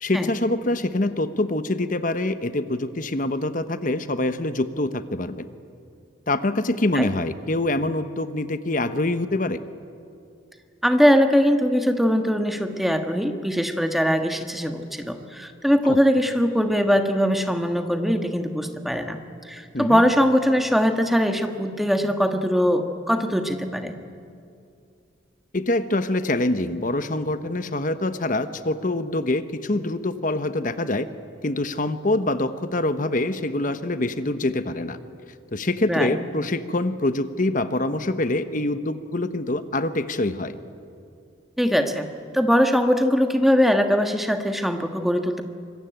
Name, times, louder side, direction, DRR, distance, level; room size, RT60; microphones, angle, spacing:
voice 1, 0.0-5.5 6.3-9.6 15.8-16.0 19.7-20.0 25.5-31.1 31.4-35.0 35.5-40.5, left 2 dB, 40° left, 11 dB, 1.1 m, -25 dB
voice 2, 10.8-19.2 19.5-24.0 35.9-36.2 41.6-42.1 42.3-45.4, equal, ahead, 5 dB, 1.5 m, -21 dB
25.5 x 22.0 x 9.2 m, 2.4 s
head